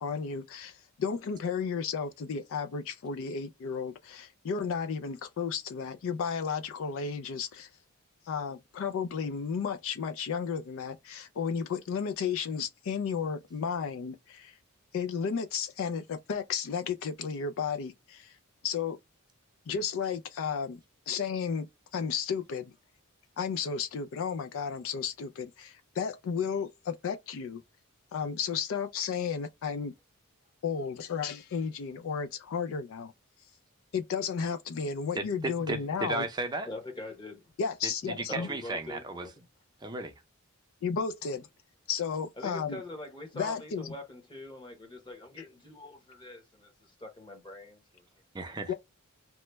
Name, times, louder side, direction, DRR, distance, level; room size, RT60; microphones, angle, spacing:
voice 1, 0.0-7.7 8.3-14.6 14.9-18.3 18.6-19.0 19.7-20.8 21.1-21.7 21.9-22.7 23.4-27.6 28.1-29.9 30.6-33.1 33.9-36.3 37.6-38.5 40.8-41.5 41.9-42.8 43.3-43.9 48.7-48.8, left 6 dB, 65° left, 0.4 m, -33 dB
voice 2, 35.2-36.7 38.1-39.3 39.8-40.1 48.3-48.7, right 2 dB, 20° right, 0.5 m, -34 dB
voice 3, 36.6-37.5 38.3-39.4 41.2-41.3 42.4-48.0, left 2 dB, 20° left, 1.1 m, -43 dB
3.0 x 2.1 x 3.2 m
head